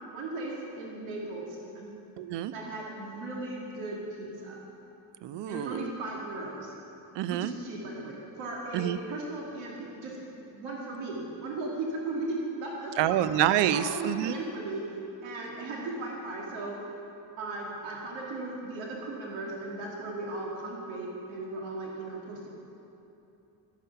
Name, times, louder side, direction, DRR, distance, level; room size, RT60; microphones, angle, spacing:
voice 1, 0.1-1.9 2.5-4.6 5.4-6.7 7.3-9.7 10.0-10.2 10.5-13.3 13.7-14.8 15.2-16.7 17.4-22.5, right 2 dB, 85° right, -3 dB, 2.2 m, -37 dB
voice 2, 2.2-2.5 5.2-5.9 7.2-7.5 8.7-9.0 13.0-14.4, right 11 dB, 70° right, 14 dB, 0.6 m, -27 dB
12.5 x 9.2 x 5.8 m, 2.9 s
cardioid pair, 130°, 45 cm